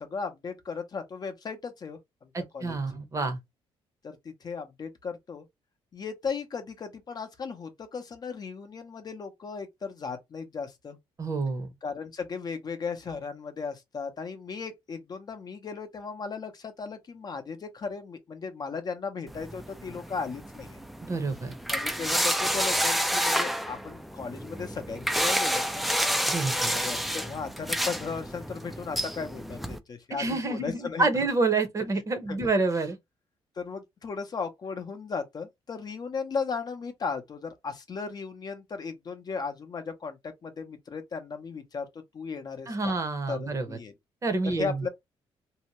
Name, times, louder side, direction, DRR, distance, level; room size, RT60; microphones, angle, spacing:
voice 1, 0.0-2.8 4.0-5.5 5.9-11.0 11.8-20.8 21.7-25.9 26.7-31.3 32.3-32.4 33.6-42.9 43.3-43.9 44.5-44.9, left 5 dB, 40° left, 0.6 m, -36 dB
voice 2, 2.3-3.4 11.2-11.7 21.0-21.5 26.3-26.8 30.2-33.0 42.7-43.7 44.2-44.7, right 3 dB, 30° right, 0.7 m, -28 dB
sound 1, 19.3-29.8, equal, ahead, 0.3 m, -29 dB
2.7 x 2.1 x 2.9 m
cardioid pair, 110°, 10 cm